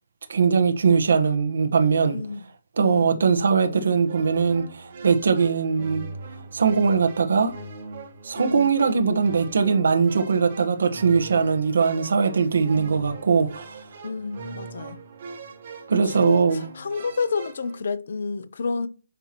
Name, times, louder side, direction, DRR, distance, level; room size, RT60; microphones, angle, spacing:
voice 1, 0.3-2.2 2.8-6.0 6.5-7.5 8.2-13.8 15.9-16.6, right 5 dB, 55° right, 1.2 m, -21 dB
voice 2, 2.1-2.5 2.8-3.1 8.3-8.7 14.0-15.0 16.0-18.9, left 4 dB, 50° left, 0.7 m, -30 dB
sound 1, 4.0-17.8, right 3 dB, 35° right, 3.8 m, -41 dB
9.0 x 6.0 x 3.0 m
hypercardioid pair, 175°, 0 cm